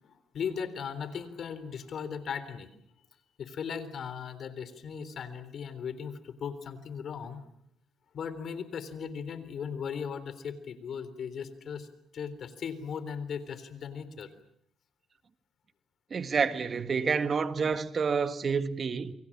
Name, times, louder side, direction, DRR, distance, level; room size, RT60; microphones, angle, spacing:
voice 1, 0.0-2.7 3.4-7.4 8.1-11.9 12.1-14.3, left 7 dB, 60° left, 3.7 m, -37 dB
voice 2, 16.1-19.1, right 5 dB, 45° right, 1.7 m, -28 dB
29.0 x 24.0 x 7.4 m
cardioid pair, 90°, 0 cm